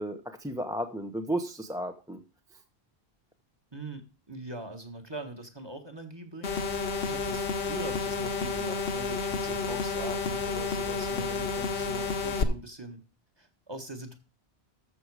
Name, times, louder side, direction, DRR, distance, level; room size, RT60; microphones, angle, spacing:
voice 1, 0.0-2.2, right 1 dB, 5° right, 5 dB, 0.7 m, -33 dB
voice 2, 3.7-13.0 13.4-14.2, right 2 dB, 25° right, 5 dB, 1.6 m, -42 dB
sound 1, 6.4-12.4, left 4 dB, 60° left, 1.2 m, -30 dB
13.5 x 6.3 x 4.9 m, 0.34 s
omnidirectional pair, 1.1 m